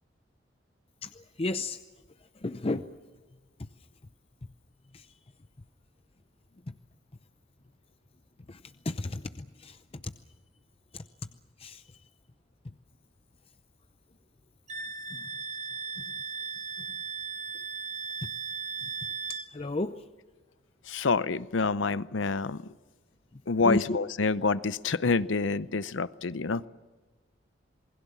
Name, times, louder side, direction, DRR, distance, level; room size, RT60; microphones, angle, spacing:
voice 1, 1.0-1.8 2.3-2.9 3.6-3.7 4.9-5.1 6.7-6.8 8.5-10.1 10.9-11.0 11.6-11.8 12.6-12.7 15.1-15.3 16.0-16.1 16.8-17.0 18.2-18.3 18.8-18.9 19.3-20.0 23.3-24.0, left 2 dB, 30° left, 10 dB, 0.6 m, -34 dB
Wind instrument woodwind instrument, 14.7-19.5, right 5 dB, 40° right, 1.2 m, -37 dB
voice 2, 20.9-22.6 23.5-26.7, left 4 dB, 85° left, 16 dB, 0.7 m, -27 dB
27.5 x 21.0 x 7.2 m, 1.3 s
head